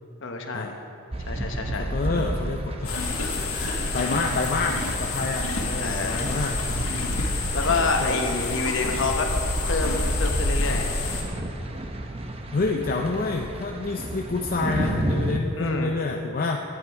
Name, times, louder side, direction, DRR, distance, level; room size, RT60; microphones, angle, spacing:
voice 1, 0.2-0.8 1.3-1.8 5.8-6.2 7.5-9.3 9.6-10.9 15.6-15.9, left 3 dB, 60° left, 3 dB, 1.1 m, -27 dB
sound 1, 1.1-15.4, right 1 dB, 25° right, 0.7 m, -33 dB
voice 2, 1.7-6.6 7.0-7.6 8.0-8.6 12.5-16.6, left 3 dB, 40° left, 2 dB, 0.5 m, -29 dB
sound 2, 2.8-11.2, left 2 dB, 80° left, 1.8 m, -28 dB
11.5 x 9.3 x 4.7 m, 2.7 s
head